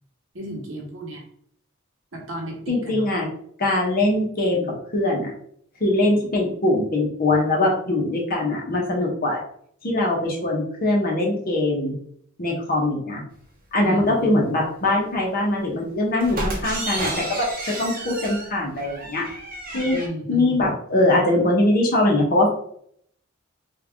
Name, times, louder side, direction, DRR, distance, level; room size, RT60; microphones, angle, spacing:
voice 1, 0.3-1.2 2.1-3.1 13.8-14.6 19.9-20.6, right 1 dB, 65° right, 0 dB, 1.0 m, -33 dB
voice 2, 2.7-3.3 3.6-4.6 4.9-5.3 5.8-9.4 9.8-11.9 12.4-13.2 13.7-19.2 19.7-20.0 20.3-22.5, left 2 dB, 45° left, -2 dB, 1.0 m, -22 dB
sound 1, 16.2-20.1, right 1 dB, 45° right, 0.8 m, -31 dB
3.4 x 2.4 x 3.4 m, 0.65 s
head